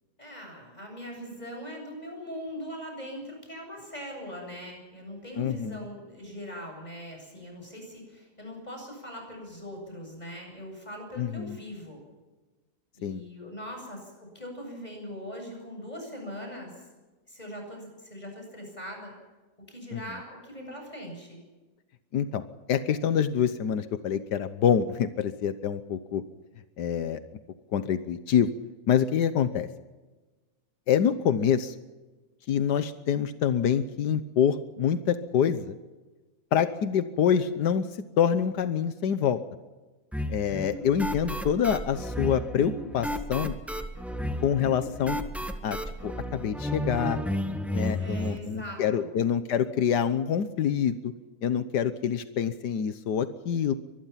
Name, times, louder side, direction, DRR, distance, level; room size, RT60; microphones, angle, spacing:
voice 1, 0.2-12.0 12.9-16.9 17.3-19.1 19.7-21.4 48.0-49.1, equal, 25° left, 2 dB, 8.2 m, -41 dB
voice 2, 5.4-5.9 11.2-11.6 13.0-13.2 19.9-20.0 22.1-22.4 22.7-26.2 26.8-27.2 27.7-28.5 28.9-29.7 30.9-31.7 32.5-35.8 36.5-37.9 38.2-39.4 40.3-43.6 44.4-45.2 45.6-45.8 46.0-47.2 47.7-51.1 51.4-53.7, left 8 dB, 90° left, 11 dB, 1.6 m, -26 dB
sound 1, 40.1-48.4, equal, ahead, 1.5 m, -32 dB
24.5 x 20.5 x 5.9 m, 1.2 s
omnidirectional pair, 1.7 m